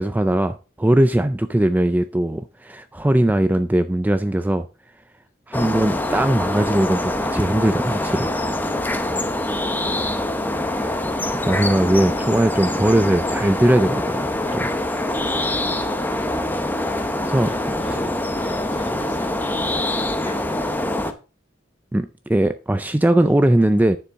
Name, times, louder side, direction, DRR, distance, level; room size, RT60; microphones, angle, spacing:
voice 1, 0.0-4.7 5.5-8.3 11.4-14.7 16.9-17.5 21.9-24.0, right 1 dB, 10° right, 0.3 m, -20 dB
sound 1, 5.5-21.1, left 1 dB, 10° left, 0.7 m, -24 dB
voice 2, 14.8-15.4 17.3-21.2, left 1 dB, 40° left, 2.4 m, -41 dB
9.8 x 7.1 x 3.6 m
head